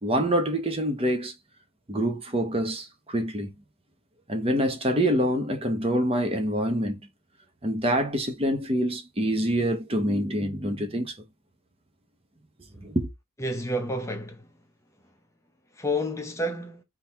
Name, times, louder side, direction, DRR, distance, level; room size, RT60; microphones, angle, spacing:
voice 1, 0.0-1.3 1.9-3.5 4.3-7.0 7.6-11.2 12.8-13.1, equal, 25° right, 0.8 m, -26 dB
voice 2, 13.4-14.5 15.7-16.8, left 1 dB, 15° left, 0.7 m, -30 dB
3.9 x 2.8 x 4.4 m
head